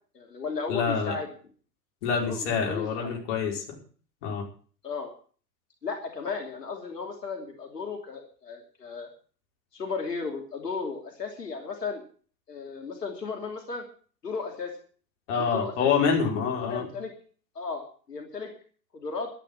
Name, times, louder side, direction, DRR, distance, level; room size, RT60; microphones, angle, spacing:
voice 1, 0.1-1.3 2.1-3.1 4.8-5.1 5.8-9.1 9.7-12.0 12.5-13.8 14.2-14.7 15.3-15.9 16.6-17.1 17.5-18.5 18.9-19.3, left 4 dB, 70° left, 2 dB, 3.1 m, -35 dB
voice 2, 0.7-1.1 2.0-3.6 4.2-4.4 15.3-16.8, left 6 dB, 45° left, 0 dB, 5.0 m, -26 dB
12.0 x 11.0 x 7.4 m, 0.43 s
figure-of-eight pair, 105°, 50 cm